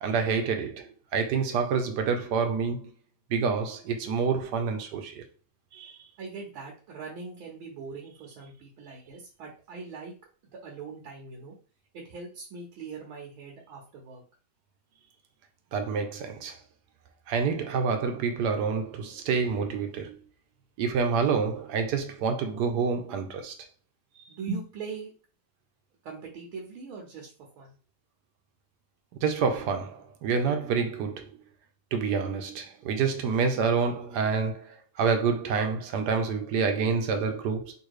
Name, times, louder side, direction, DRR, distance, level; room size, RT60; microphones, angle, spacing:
voice 1, 0.0-2.9 3.3-5.2 5.7-6.0 15.7-16.6 17.3-20.2 20.8-23.5 29.2-31.3 31.9-37.7, right 5 dB, 65° right, 1.2 m, -28 dB
voice 2, 6.2-10.1 10.6-11.6 11.9-14.2 24.3-25.1 26.0-27.8, right 4 dB, 90° right, 1.8 m, -40 dB
3.9 x 2.7 x 4.7 m
omnidirectional pair, 2.2 m